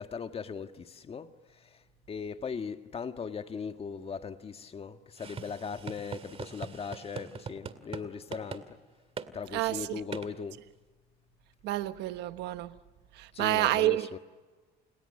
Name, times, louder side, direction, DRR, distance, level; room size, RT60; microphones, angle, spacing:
voice 1, 0.0-1.3 1.7-1.8 2.1-8.7 9.3-10.6 13.3-14.2, left 6 dB, 35° left, 1.7 m, -39 dB
sound 1, 5.2-8.0 8.3-8.6 9.2-9.3 10.1-10.3, right 6 dB, 35° right, 2.3 m, -41 dB
voice 2, 9.5-10.0 11.6-12.7 13.1-14.1, right 16 dB, 85° right, 1.3 m, -29 dB
29.5 x 29.0 x 6.7 m
cardioid pair, 110°, 17 cm